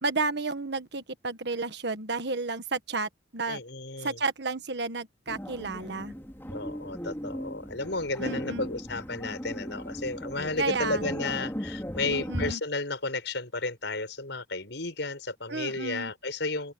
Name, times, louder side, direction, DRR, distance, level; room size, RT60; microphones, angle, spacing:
voice 1, 0.0-3.6 4.0-6.1 8.2-8.7 10.6-11.2 12.0-12.6 15.5-16.1, right 3 dB, 60° right, 1.5 m, -32 dB
voice 2, 3.5-4.2 6.5-16.7, left 3 dB, 65° left, 7.0 m, -33 dB
sound 1, 5.3-12.5, equal, 10° left, 3.6 m, -37 dB
open air
head